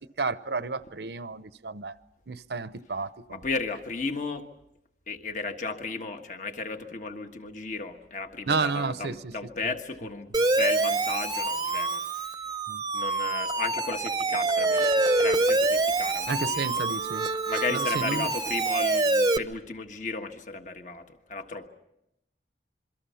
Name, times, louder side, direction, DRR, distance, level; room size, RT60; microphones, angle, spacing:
voice 1, 0.2-1.9 2.3-3.4 8.5-9.3 12.7-12.8 16.3-17.3 17.7-18.3, right 4 dB, 70° right, 0.8 m, -31 dB
voice 2, 3.3-4.5 5.1-10.3 10.6-12.5 12.9-16.9 17.5-21.7, left 3 dB, 45° left, 1.5 m, -34 dB
Siren, 10.3-19.4, right 2 dB, 20° right, 0.8 m, -26 dB
27.5 x 23.0 x 5.7 m
head